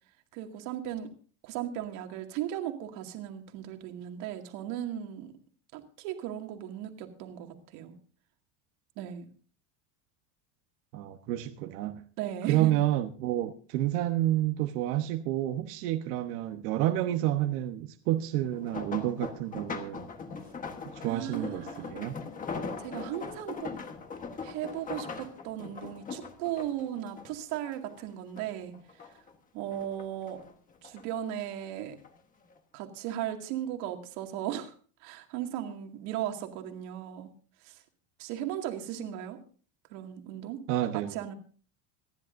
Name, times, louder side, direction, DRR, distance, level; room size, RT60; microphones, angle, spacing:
voice 1, 0.3-1.1 1.4-5.3 5.7-7.9 9.0-9.3 12.2-12.7 21.0-22.1 22.8-23.7 24.4-28.7 29.5-30.4 30.8-32.0 32.7-34.7 35.0-37.3 37.6-37.8 38.2-39.4 39.9-41.3, right 11 dB, 60° right, 4 dB, 2.2 m, -37 dB
voice 2, 10.9-12.0 12.5-20.1 20.9-22.2 40.7-41.2, right 13 dB, 90° right, 5 dB, 1.2 m, -29 dB
sound 1, 18.4-28.0 28.4-29.3 29.7-31.0 31.8-32.1 32.5-32.6, left 5 dB, 20° left, 1.3 m, -40 dB
26.5 x 10.5 x 2.6 m, 0.40 s
cardioid pair, 175°, 45 cm